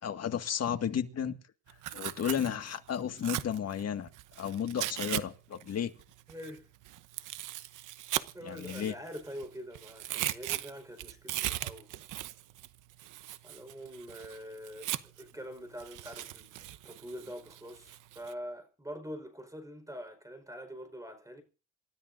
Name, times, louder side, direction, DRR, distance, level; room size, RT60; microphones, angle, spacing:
voice 1, 0.0-1.4 1.9-4.1 4.4-5.9 8.4-8.9, left 8 dB, 55° left, 2.0 m, -33 dB
Tearing, 1.7-5.2 5.5-9.4 9.7-15.3 15.8-18.3, right 14 dB, 85° right, 0.9 m, -38 dB
voice 2, 6.3-6.7 8.3-11.9 13.4-16.5 16.8-21.4, equal, 10° right, 4.7 m, -44 dB
28.5 x 13.5 x 2.7 m
cardioid pair, 90°, 30 cm